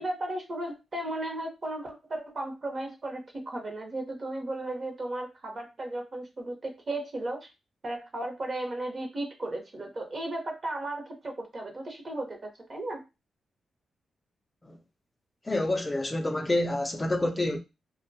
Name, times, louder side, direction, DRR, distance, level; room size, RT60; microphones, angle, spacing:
voice 1, 0.0-7.5 7.8-13.0, right 1 dB, 40° right, 0.8 m, -35 dB
voice 2, 15.5-17.6, left 1 dB, 20° left, 0.3 m, -28 dB
2.6 x 2.1 x 2.6 m
cardioid pair, 105°, 0 cm